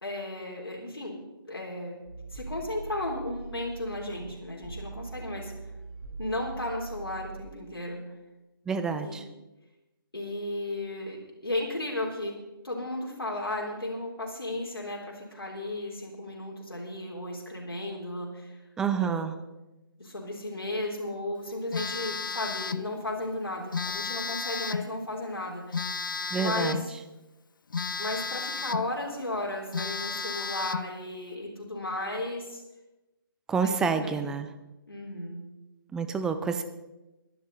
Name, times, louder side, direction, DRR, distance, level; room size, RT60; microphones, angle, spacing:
voice 1, 0.0-1.2 1.5-2.0 2.3-5.5 6.2-8.0 9.0-9.2 10.1-18.6 19.0-19.2 20.0-25.8 26.3-26.9 28.0-32.6 33.6-34.3 34.9-35.5, left 1 dB, 80° left, -2 dB, 3.5 m, -34 dB
sound 1, 2.0-7.4, right 4 dB, 45° right, 5.6 m, -42 dB
voice 2, 8.7-9.2 18.8-19.3 26.3-26.8 33.5-34.5 35.9-36.6, right 5 dB, 5° right, 10 dB, 0.5 m, -28 dB
Telephone, 21.7-22.9 23.7-24.9 25.7-26.9 27.7-28.9 29.3-29.4 29.7-30.9, left 5 dB, 60° left, 0.6 m, -33 dB
20.5 x 11.0 x 4.0 m, 1.0 s
figure-of-eight pair, 145°, 12 cm